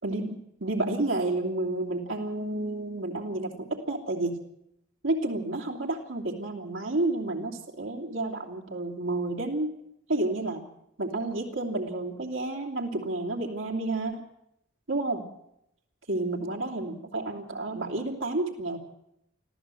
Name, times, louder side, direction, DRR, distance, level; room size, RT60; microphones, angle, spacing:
voice 1, 0.0-4.4 5.0-9.7 10.1-10.6 11.0-14.2 14.9-15.2 16.1-18.8, right 2 dB, 85° right, -1 dB, 2.9 m, -30 dB
25.0 x 15.0 x 7.7 m, 0.80 s
head